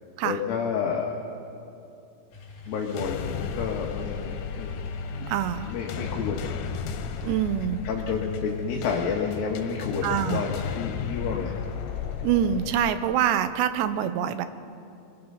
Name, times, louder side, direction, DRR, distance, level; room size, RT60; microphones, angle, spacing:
voice 1, 0.2-1.1 2.7-4.8 5.7-6.5 7.9-11.5, left 6 dB, 65° left, 0 dB, 3.0 m, -30 dB
sound 1, 2.3-12.8, left 1 dB, 50° left, 4.8 m, -45 dB
sound 2, 2.8-12.9, left 7 dB, 90° left, 3.2 m, -34 dB
voice 2, 5.2-5.7 7.2-7.8 10.0-10.4 12.2-14.5, right 10 dB, 90° right, 11 dB, 3.0 m, -25 dB
23.5 x 22.0 x 5.6 m, 2.6 s
omnidirectional pair, 4.9 m